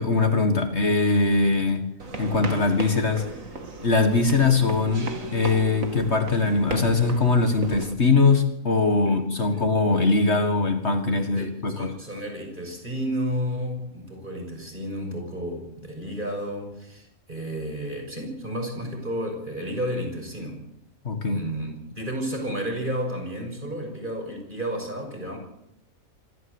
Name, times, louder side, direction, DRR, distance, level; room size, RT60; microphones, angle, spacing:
voice 1, 0.0-1.8 2.2-3.3 3.8-11.9 21.0-21.5, left 3 dB, 50° left, 7 dB, 2.1 m, -21 dB
sound 1, 2.0-7.9, right 3 dB, 70° right, 2.8 m, -36 dB
voice 2, 11.4-20.6 21.3-25.4, equal, 35° right, 3 dB, 6.3 m, -32 dB
25.5 x 13.5 x 8.1 m, 0.81 s
omnidirectional pair, 1.5 m